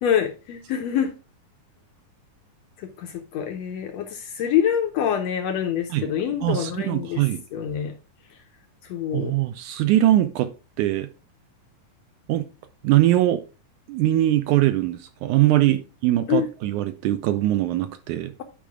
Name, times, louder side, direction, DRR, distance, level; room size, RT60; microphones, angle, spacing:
voice 1, 0.0-1.1 2.8-7.2 7.5-7.9 8.8-9.3 15.7-15.8 16.3-16.5, left 9 dB, 80° left, 1.5 m, -25 dB
voice 2, 6.4-7.4 9.1-10.5 10.8-11.1 12.3-12.5 12.8-13.4 13.9-18.3, right 14 dB, 80° right, 1.9 m, -21 dB
10.5 x 5.1 x 3.5 m
omnidirectional pair, 3.9 m